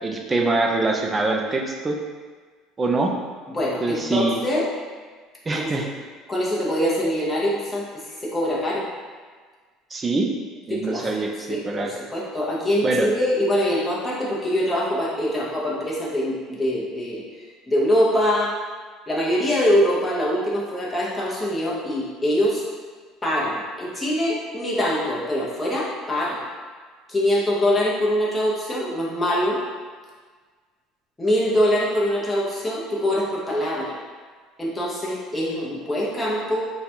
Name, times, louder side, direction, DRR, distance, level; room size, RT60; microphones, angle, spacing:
voice 1, 0.0-2.0 2.8-3.1 3.8-4.4 5.5-5.9 9.9-10.3 10.7-11.9 12.8-13.1, right 3 dB, 15° right, 2 dB, 0.4 m, -24 dB
voice 2, 3.5-4.6 5.5-5.7 6.3-8.9 10.7-11.1 11.5-17.2 17.7-18.6 19.1-22.6 23.2-26.4 27.1-29.6 31.2-34.0 34.6-36.6, equal, 10° left, -6 dB, 0.8 m, -23 dB
3.8 x 2.3 x 4.3 m, 1.5 s
cardioid pair, 160°, 0 cm